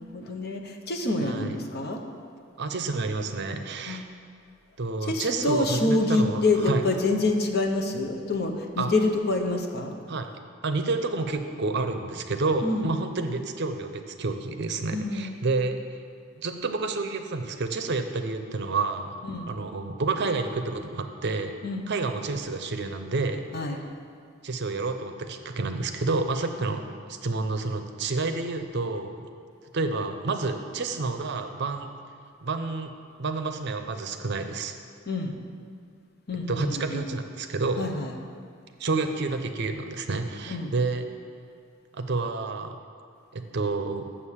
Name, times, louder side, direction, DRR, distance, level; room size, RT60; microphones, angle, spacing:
voice 1, 0.0-2.0 3.9-4.0 5.0-10.0 12.6-12.9 14.9-15.3 19.3-19.5 21.6-21.9 23.5-23.8 35.1-35.3 36.3-37.0 37.8-38.1 40.5-40.7, left 2 dB, 55° left, 3 dB, 0.9 m, -27 dB
voice 2, 1.2-1.6 2.6-4.1 4.8-6.8 8.8-8.9 10.1-10.3 10.6-15.8 16.4-19.1 19.5-21.5 21.9-23.5 24.4-26.8 27.1-29.1 29.7-31.9 32.4-32.9 33.2-34.7 36.5-37.9 38.8-41.1 41.9-42.8 43.3-44.1, right 3 dB, 55° right, 7 dB, 0.6 m, -29 dB
7.2 x 6.5 x 7.2 m, 2.2 s
head